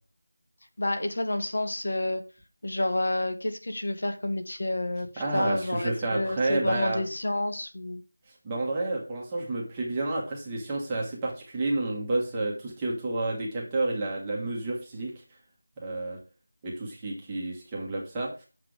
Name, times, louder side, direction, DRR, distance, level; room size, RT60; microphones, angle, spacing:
voice 1, 0.8-2.2 2.6-5.1 5.3-8.0, left 1 dB, 55° left, 7 dB, 1.5 m, -29 dB
voice 2, 5.2-7.0 8.4-15.2 15.8-16.2 16.6-18.4, right 2 dB, 10° right, -4 dB, 1.3 m, -30 dB
7.5 x 6.0 x 4.8 m, 0.33 s
figure-of-eight pair, 175°, 0 cm